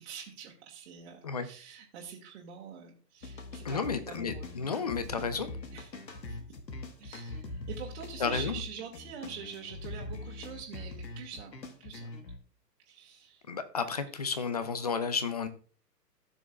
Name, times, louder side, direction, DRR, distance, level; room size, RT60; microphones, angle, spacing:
voice 1, 0.0-4.5 5.7-5.9 6.3-6.4 7.0-11.5 11.8-12.1 12.9-13.4 13.9-14.1, right 7 dB, 40° right, -2 dB, 1.7 m, -45 dB
sound 1, 3.2-12.4, left 2 dB, 85° left, 1.4 m, -42 dB
voice 2, 3.6-5.5 8.2-8.6 13.5-15.5, left 5 dB, 25° left, 12 dB, 0.4 m, -32 dB
14.5 x 6.2 x 2.3 m, 0.42 s
figure-of-eight pair, 125°, 49 cm